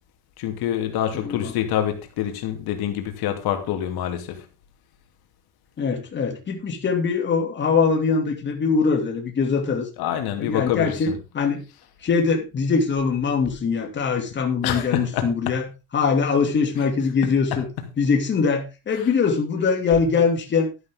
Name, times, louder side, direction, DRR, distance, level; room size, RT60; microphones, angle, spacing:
voice 1, 0.4-4.4 10.0-11.2 14.6-15.5 17.2-17.6, left 10 dB, 85° left, 2.5 m, -26 dB
voice 2, 1.1-1.5 5.8-9.9 10.4-11.6 12.0-15.7 15.9-17.7 18.0-20.7, left 5 dB, 30° left, 2.7 m, -22 dB
12.0 x 11.0 x 3.7 m
cardioid pair, 175°, 36 cm